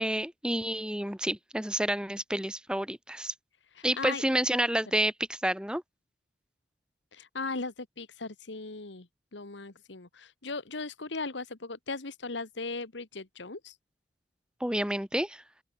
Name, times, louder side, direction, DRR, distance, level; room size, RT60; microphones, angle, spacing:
voice 1, 0.0-3.3 3.8-5.8 14.6-15.4, right 1 dB, 5° right, 2.2 m, -29 dB
voice 2, 3.7-4.2 7.1-9.1 9.3-13.8, left 3 dB, 70° left, 1.5 m, -38 dB
open air
head